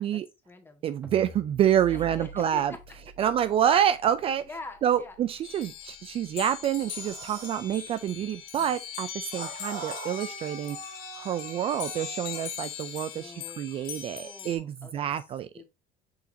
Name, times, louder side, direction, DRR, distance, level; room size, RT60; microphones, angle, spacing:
voice 1, 0.0-0.8 1.9-2.8 3.2-3.5 4.4-5.2 8.6-8.7 13.1-15.0 15.5-15.6, left 3 dB, 15° left, 1.6 m, -45 dB
voice 2, 0.8-2.7 3.2-4.4 4.8-15.5, right 10 dB, 35° right, 0.3 m, -27 dB
sound 1, 1.0-7.3, right 2 dB, 10° right, 1.5 m, -48 dB
sound 2, 5.4-14.6, left 9 dB, 70° left, 1.5 m, -40 dB
sound 3, 6.8-7.7 9.3-12.5, right 4 dB, 65° right, 3.3 m, -42 dB
6.3 x 5.6 x 2.7 m
cardioid pair, 125°, 16 cm